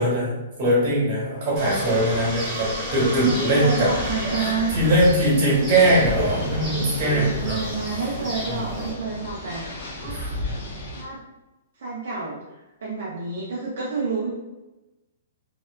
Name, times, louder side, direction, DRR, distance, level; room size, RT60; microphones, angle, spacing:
voice 1, 0.0-3.9 4.4-7.6 10.0-10.7, right 1 dB, 40° right, -6 dB, 1.2 m, -21 dB
sound 1, 1.5-8.9, equal, 15° right, 0.9 m, -32 dB
sound 2, 1.6-5.4 5.8-8.8, equal, 5° left, 0.5 m, -40 dB
voice 2, 3.3-4.8 7.1-9.6 10.0-10.2 10.9-11.2 11.8-12.4 12.8-14.3, right 4 dB, 65° right, -4 dB, 0.5 m, -29 dB
sound 3, 3.9-11.0, left 1 dB, 55° left, 0.7 m, -34 dB
2.7 x 2.1 x 2.3 m, 1.0 s
hypercardioid pair, 165°, 0 cm